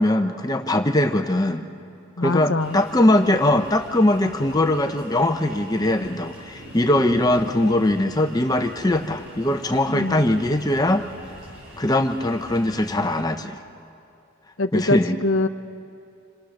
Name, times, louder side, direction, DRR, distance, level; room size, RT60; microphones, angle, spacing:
voice 1, 0.0-1.7 2.2-11.1 11.8-13.6 14.7-15.2, left 1 dB, 15° left, 6 dB, 0.7 m, -21 dB
voice 2, 2.2-2.8 9.9-10.2 14.6-15.5, left 2 dB, 65° left, 8 dB, 0.9 m, -23 dB
sound 1, 2.6-13.2, equal, 70° right, 7.5 m, -41 dB
28.0 x 26.0 x 6.5 m, 2.5 s
head